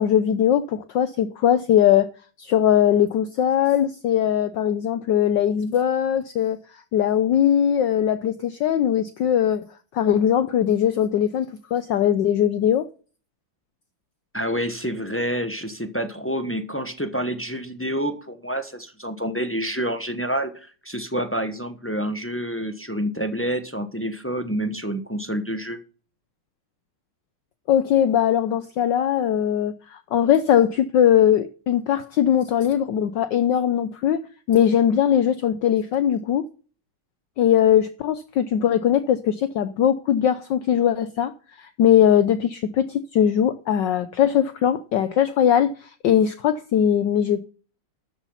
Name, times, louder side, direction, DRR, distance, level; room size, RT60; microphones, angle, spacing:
voice 1, 0.0-2.1 2.4-9.6 9.9-12.9 27.7-36.4 37.4-41.3 41.6-47.4, left 9 dB, 65° left, 1.3 m, -20 dB
voice 2, 14.3-25.8, equal, 15° left, 0.4 m, -28 dB
13.0 x 7.1 x 5.7 m
omnidirectional pair, 2.3 m